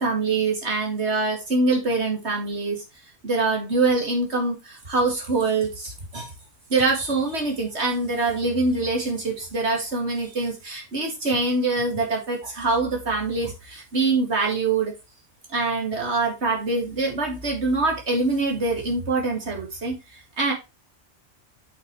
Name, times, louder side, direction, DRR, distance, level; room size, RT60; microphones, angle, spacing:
voice 1, 0.0-2.8 3.2-6.3 6.7-14.9 15.5-20.5, right 3 dB, 65° right, 0 dB, 2.5 m, -24 dB
7.6 x 6.3 x 3.1 m, 0.25 s
omnidirectional pair, 1.2 m